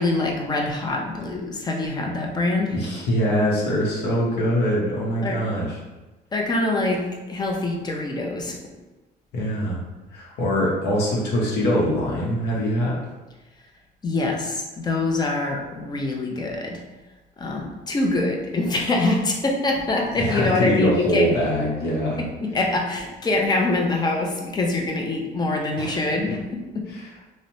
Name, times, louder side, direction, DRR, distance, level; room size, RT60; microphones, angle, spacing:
voice 1, 0.0-2.7 5.2-5.4 6.3-8.6 14.0-16.8 17.4-21.3 22.2-26.9, left 2 dB, 25° left, 0 dB, 0.5 m, -24 dB
voice 2, 2.7-5.8 9.3-9.8 10.1-13.0 20.1-22.2 25.8-26.0 26.9-27.1, equal, 75° left, -4 dB, 0.7 m, -23 dB
2.9 x 2.1 x 2.6 m, 1.1 s
cardioid pair, 110°, 17 cm